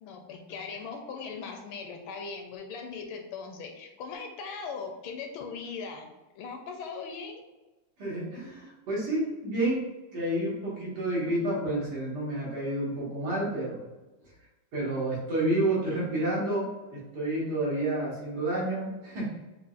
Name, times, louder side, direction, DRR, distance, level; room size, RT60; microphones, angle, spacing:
voice 1, 0.0-7.4, left 5 dB, 75° left, 3 dB, 1.3 m, -39 dB
voice 2, 8.0-9.8 10.1-13.8 14.7-19.3, right 1 dB, 80° right, -7 dB, 2.5 m, -30 dB
6.1 x 2.4 x 2.5 m, 1.1 s
omnidirectional pair, 2.4 m